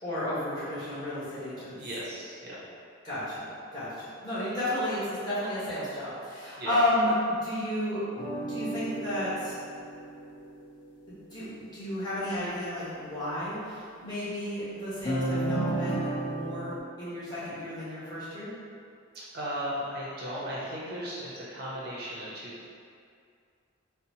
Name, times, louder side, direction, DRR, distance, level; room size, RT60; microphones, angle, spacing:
voice 1, 0.0-1.7 3.0-8.0 8.5-9.5 11.1-18.5, left 1 dB, 20° left, -13 dB, 1.1 m, -32 dB
voice 2, 1.7-2.6 6.6-6.8 19.3-22.7, equal, 50° right, -7 dB, 0.5 m, -36 dB
sound 1, 8.2-10.8 15.1-16.8, right 1 dB, 35° left, 0.5 m, -32 dB
3.9 x 2.0 x 2.8 m, 2.3 s
head